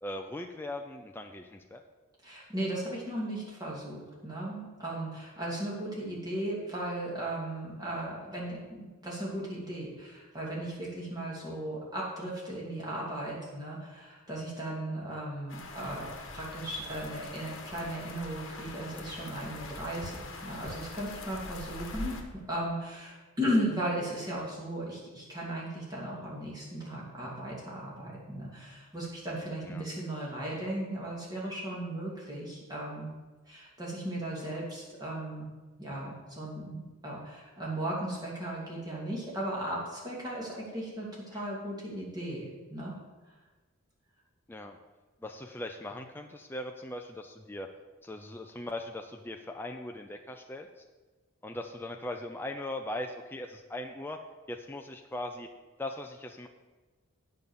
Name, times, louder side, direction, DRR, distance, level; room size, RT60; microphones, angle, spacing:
voice 1, 0.0-1.8 22.1-22.2 29.6-29.9 41.3-41.4 44.5-44.8 45.2-47.7 48.0-50.8 51.4-54.2 54.5-55.5 55.8-56.5, left 1 dB, 10° left, 3 dB, 0.4 m, -39 dB
voice 2, 2.2-22.2 22.5-33.1 33.5-35.5 35.8-42.9, right 1 dB, 20° right, -5 dB, 2.7 m, -36 dB
sound 1, 15.5-22.2, left 3 dB, 60° left, 1.2 m, -43 dB
8.7 x 5.4 x 7.9 m, 1.2 s
head